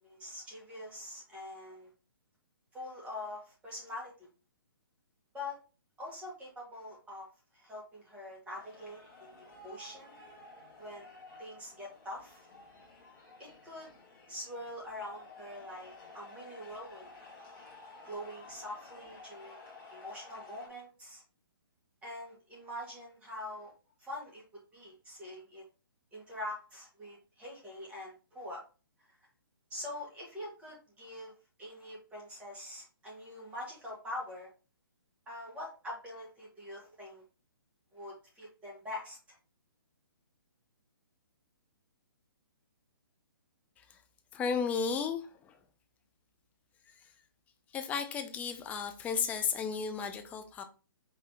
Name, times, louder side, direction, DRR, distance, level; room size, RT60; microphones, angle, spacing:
voice 1, 0.0-1.9 2.7-4.3 5.3-5.6 6.0-7.3 7.5-10.3 10.8-11.1 11.4-12.4 13.4-13.9 14.3-17.1 18.1-19.6 19.9-21.2 22.0-23.7 24.0-24.4 24.7-25.6 26.1-28.6 29.0-29.1 29.7-31.3 31.6-34.5 35.2-37.2 37.9-39.2, left 1 dB, 10° right, 1.7 m, -44 dB
sound 1, 8.6-20.7, left 2 dB, 30° left, 2.0 m, -53 dB
voice 2, 44.3-45.6 47.0-47.1 47.7-50.6, left 6 dB, 10° left, 0.4 m, -34 dB
5.1 x 3.2 x 2.9 m
hypercardioid pair, 140°, 12 cm